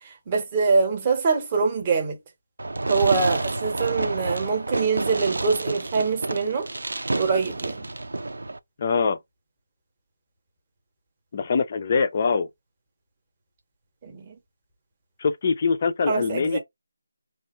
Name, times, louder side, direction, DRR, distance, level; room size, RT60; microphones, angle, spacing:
voice 1, 0.0-2.2 2.9-6.7 7.1-7.9 14.0-14.4 16.1-16.6, right 4 dB, 15° right, 0.8 m, -24 dB
Fireworks, 2.6-8.6, right 2 dB, 65° right, 0.6 m, -29 dB
voice 2, 8.8-9.2 11.3-12.5 15.2-16.6, left 5 dB, 25° left, 0.4 m, -23 dB
3.2 x 2.4 x 4.2 m
figure-of-eight pair, 175°, 0 cm